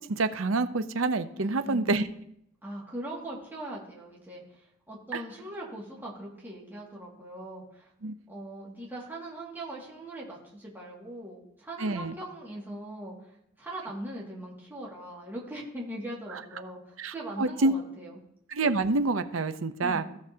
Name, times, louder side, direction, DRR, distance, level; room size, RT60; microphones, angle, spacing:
voice 1, 0.1-2.0 5.1-5.2 8.0-8.1 11.8-12.2 17.0-17.7 18.5-20.0, right 3 dB, 75° right, 10 dB, 0.7 m, -27 dB
voice 2, 1.4-1.9 2.6-7.9 8.3-18.2 19.8-20.0, right 1 dB, 10° right, -5 dB, 2.1 m, -40 dB
15.5 x 6.4 x 2.8 m, 0.74 s
head